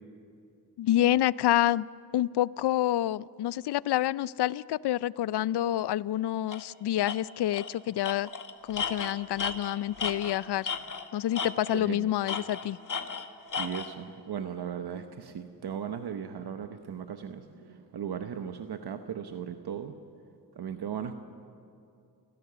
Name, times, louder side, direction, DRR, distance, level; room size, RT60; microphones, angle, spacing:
voice 1, 0.8-1.9 2.1-8.3 8.7-10.7 11.1-12.8, left 13 dB, 75° left, 21 dB, 0.5 m, -28 dB
Tools, 6.5-6.6 7.0-7.2 7.5-7.7 8.0-11.1 11.4-11.9 12.3-13.9, left 5 dB, 50° left, 1.5 m, -34 dB
voice 2, 11.7-12.1 13.6-20.0 20.6-21.1, right 8 dB, 70° right, 7 dB, 1.0 m, -37 dB
29.5 x 16.0 x 6.9 m, 2.6 s
cardioid pair, 70°, 41 cm